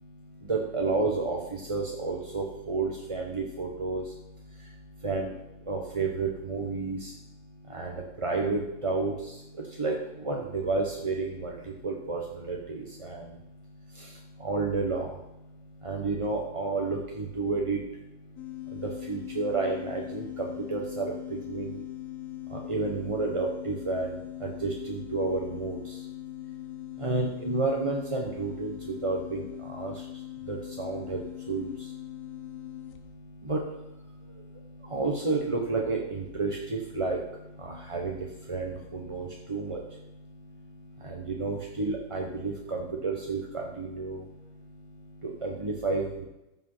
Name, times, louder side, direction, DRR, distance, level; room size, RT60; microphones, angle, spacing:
voice 1, 0.0-46.3, right 3 dB, 25° right, 0 dB, 0.7 m, -32 dB
sound 1, 18.4-33.1, left 26 dB, 50° left, 1.2 m, -41 dB
14.5 x 5.9 x 5.6 m, 0.92 s
omnidirectional pair, 2.1 m